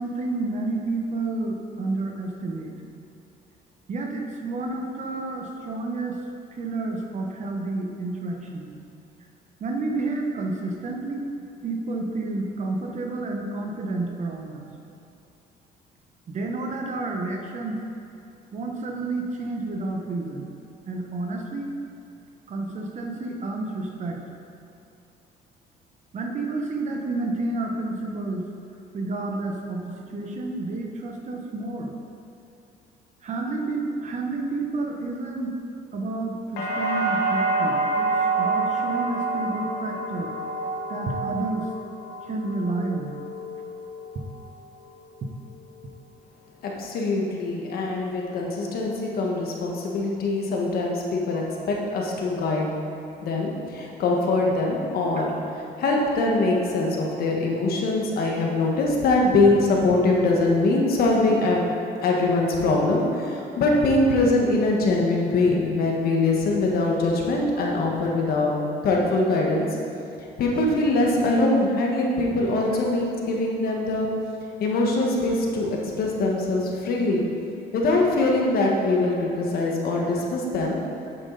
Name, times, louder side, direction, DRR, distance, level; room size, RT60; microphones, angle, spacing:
voice 1, 0.0-2.7 3.9-6.2 6.6-8.7 9.6-11.3 11.6-14.6 16.3-17.8 18.5-20.5 20.9-21.7 22.5-24.2 26.1-28.4 28.9-31.9 33.2-35.5 35.9-40.3 40.9-41.7 42.2-43.2 44.1-44.2 45.2-45.3 67.6-67.7, right 2 dB, 45° right, 2 dB, 1.1 m, -30 dB
sound 1, 36.6-44.5 44.8-45.5, right 3 dB, 90° left, 1.6 m, -28 dB
voice 2, 46.6-52.7 53.2-61.6 62.0-68.5 68.8-69.7 70.4-74.1 74.6-77.2 77.7-80.8, left 2 dB, 65° left, -1 dB, 1.6 m, -23 dB
9.0 x 7.6 x 4.1 m, 2.6 s
cardioid pair, 110°, 17 cm